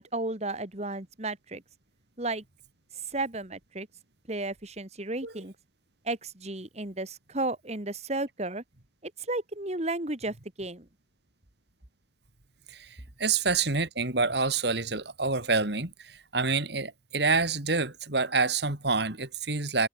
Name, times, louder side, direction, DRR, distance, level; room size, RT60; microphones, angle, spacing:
voice 1, 0.0-1.6 2.2-2.4 3.1-3.9 4.3-5.5 6.1-8.6 9.0-10.9, right 2 dB, 35° right, 2.0 m, -33 dB
voice 2, 12.7-19.9, right 4 dB, 60° right, 2.6 m, -27 dB
head